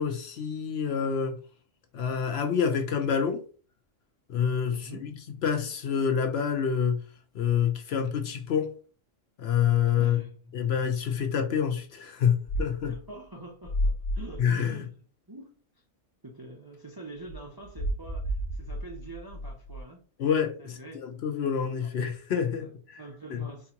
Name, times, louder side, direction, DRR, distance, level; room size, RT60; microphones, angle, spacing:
voice 1, 0.0-1.4 1.9-3.4 4.3-5.1 5.4-7.1 7.3-8.7 9.4-10.2 10.5-13.0 14.4-14.9 20.2-23.0 23.3-23.5, left 7 dB, 65° left, 0.8 m, -27 dB
voice 2, 4.7-5.0 10.0-10.4 12.8-14.9 15.3-15.6 16.2-20.0 20.6-21.0 21.6-21.8 22.6-23.7, right 1 dB, 30° right, 0.5 m, -45 dB
sound 1, 12.5-13.0 13.6-14.4 17.3-19.8, equal, 35° left, 0.5 m, -31 dB
4.4 x 2.4 x 2.8 m
omnidirectional pair, 1.3 m